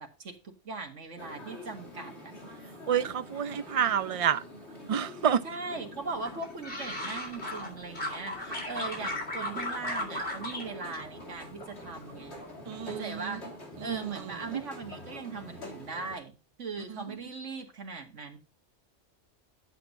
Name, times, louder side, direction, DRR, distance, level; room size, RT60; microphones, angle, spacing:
voice 1, 0.0-2.3 5.4-12.4 12.9-13.4 13.8-18.4, right 4 dB, 85° right, 2.2 m, -39 dB
sound 1, 1.2-16.2, equal, 65° left, 3.1 m, -46 dB
voice 2, 2.9-4.4 4.9-5.4 12.7-13.3 13.9-14.2 14.5-14.6, right 8 dB, 45° right, 0.4 m, -28 dB
sound 2, 6.2-7.7 8.0-10.6 10.9-11.7 12.0-12.5, left 1 dB, 50° left, 3.9 m, -36 dB
11.5 x 8.3 x 2.7 m
omnidirectional pair, 1.2 m